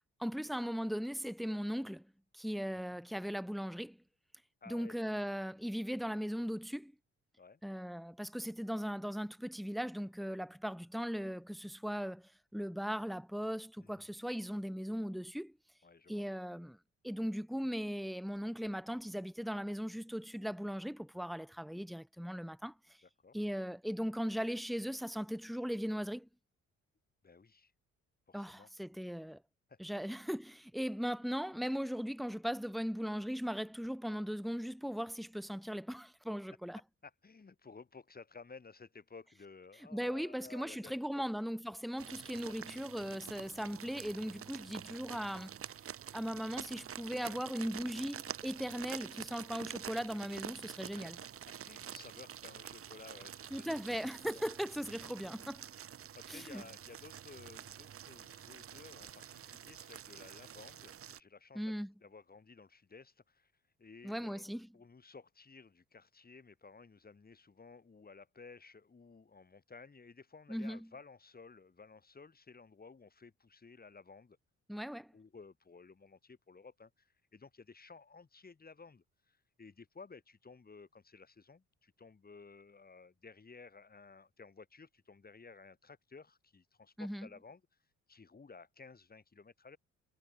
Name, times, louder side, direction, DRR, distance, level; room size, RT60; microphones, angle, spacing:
voice 1, 0.2-2.1 2.3-4.0 4.7-6.9 7.6-15.5 16.1-16.8 17.0-22.7 23.3-26.3 28.3-29.4 29.8-36.8 39.9-45.7 46.1-51.2 53.5-55.7 56.3-56.6 61.5-61.9 64.0-64.7 70.5-70.9 74.7-75.1 87.0-87.3, equal, ahead, 1.8 m, -38 dB
voice 2, 4.6-5.0 7.4-7.6 13.8-14.1 15.8-16.2 23.0-23.4 27.2-27.7 28.3-28.7 29.7-29.8 37.0-41.2 47.2-47.3 51.7-54.0 54.3-54.4 56.1-63.5 63.8-74.4 75.1-87.6 88.1-89.8, left 4 dB, 30° left, 7.2 m, -55 dB
sound 1, 42.0-61.2, right 9 dB, 45° right, 1.1 m, -48 dB
cardioid pair, 90°, 30 cm